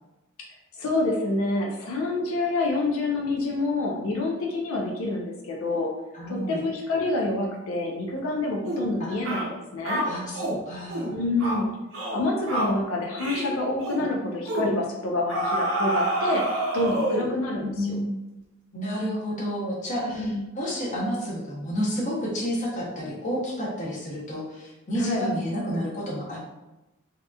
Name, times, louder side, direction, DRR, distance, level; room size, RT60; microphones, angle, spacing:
voice 1, 0.8-5.9 6.3-10.1 11.1-11.7 12.1-16.4 16.7-18.0 20.0-20.4 25.0-25.3, left 2 dB, 90° left, 0 dB, 0.5 m, -27 dB
voice 2, 6.1-6.6 9.0-9.1 10.0-11.1 17.6-18.1 18.7-26.4, equal, 35° left, -4 dB, 0.7 m, -30 dB
sound 1, 8.6-8.9 9.2-9.5 9.8-10.6 10.9-11.1 11.4-11.6 11.9-12.2 12.5-12.8 13.2-13.5 13.8-14.0 14.5-14.7 15.3-17.3, right 1 dB, 90° right, 0.7 m, -27 dB
2.8 x 2.3 x 2.2 m, 0.99 s
head